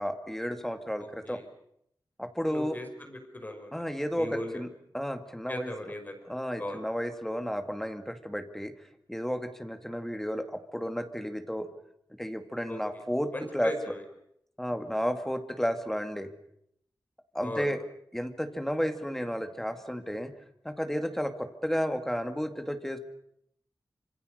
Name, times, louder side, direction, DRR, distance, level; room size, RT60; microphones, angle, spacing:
voice 1, 0.0-1.4 2.2-2.8 3.7-4.7 4.9-5.7 6.3-8.7 9.1-11.7 12.2-13.7 14.6-16.3 17.3-17.8 18.1-20.3 20.6-23.0, equal, 5° left, 7 dB, 2.2 m, -32 dB
voice 2, 1.0-1.4 2.4-3.7 4.2-4.6 5.5-6.1 6.6-6.8 12.7-12.8 13.3-14.0 17.4-17.7, left 1 dB, 25° left, 5 dB, 5.5 m, -37 dB
27.0 x 26.0 x 6.6 m, 0.74 s
wide cardioid pair, 125°, 7 cm